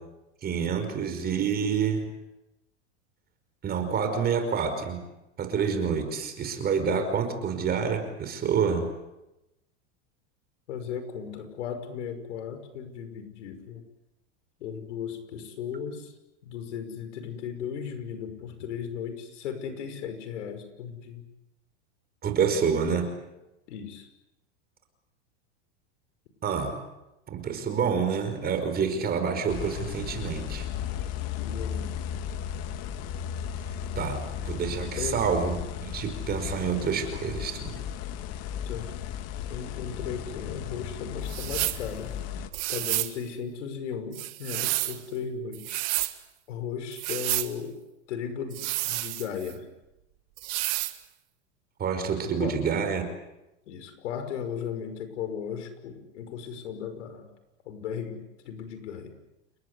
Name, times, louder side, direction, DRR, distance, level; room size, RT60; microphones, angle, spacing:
voice 1, 0.4-2.1 3.6-5.0 5.4-8.9 22.2-23.1 26.4-26.8 27.3-30.7 34.0-37.7 51.8-53.0, right 6 dB, 25° right, 7 dB, 5.3 m, -28 dB
voice 2, 10.7-13.8 14.6-16.1 16.4-21.2 23.7-24.1 31.4-31.9 35.0-35.2 38.7-39.0 39.5-42.1 42.7-46.0 46.5-47.8 48.1-49.7 52.4-52.6 53.7-57.3 57.7-59.1, left 7 dB, 85° left, 9 dB, 5.8 m, -36 dB
sound 1, 29.5-42.5, left 9 dB, 45° left, 2.1 m, -35 dB
sound 2, 41.3-41.8 42.5-43.2 44.1-45.0 45.5-46.1 46.9-47.5 48.5-49.5 50.4-51.0, right 20 dB, 50° right, 1.8 m, -30 dB
29.5 x 21.0 x 8.4 m, 0.95 s
supercardioid pair, 135°, 35 cm